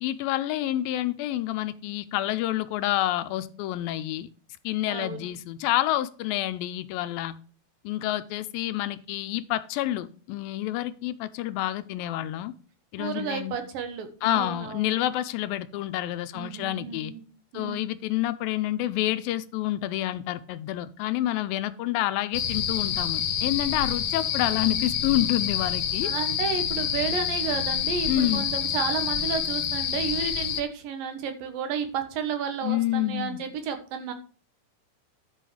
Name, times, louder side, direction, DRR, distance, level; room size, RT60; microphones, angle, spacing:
voice 1, 0.0-4.3 4.6-7.3 7.8-12.5 12.9-13.6 14.2-17.1 17.5-26.1 28.1-28.5 32.6-33.4, left 14 dB, 80° left, 2.3 m, -28 dB
voice 2, 4.9-5.3 13.0-15.0 16.3-17.2 17.5-17.9 26.0-34.1, right 6 dB, 70° right, 2.9 m, -32 dB
sound 1, 22.3-30.6, left 8 dB, 65° left, 1.9 m, -28 dB
11.0 x 5.7 x 4.8 m
omnidirectional pair, 4.3 m